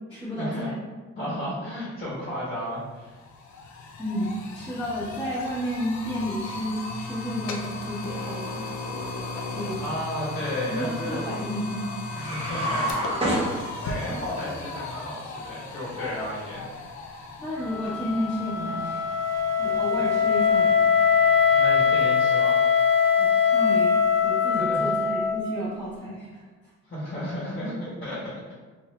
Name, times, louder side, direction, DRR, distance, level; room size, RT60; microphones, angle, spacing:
voice 1, 0.1-0.8 4.0-8.6 9.5-9.8 10.6-12.2 17.4-19.0 19.6-20.9 23.2-26.4, equal, 5° left, -13 dB, 1.3 m, -32 dB
voice 2, 1.2-3.2 9.8-11.3 12.2-12.9 13.2-16.7 21.5-22.6 24.5-24.9 26.9-28.5, left 1 dB, 35° left, -8 dB, 1.3 m, -33 dB
sound 1, 2.5-2.6 2.9-21.9, left 3 dB, 70° left, 0.6 m, -37 dB
sound 2, 12.1-14.2, right 1 dB, 20° right, 1.3 m, -27 dB
Wind instrument woodwind instrument, 17.6-25.6, left 6 dB, 85° right, 0.7 m, -22 dB
2.7 x 2.7 x 3.2 m, 1.3 s
cardioid pair, 90°, 30 cm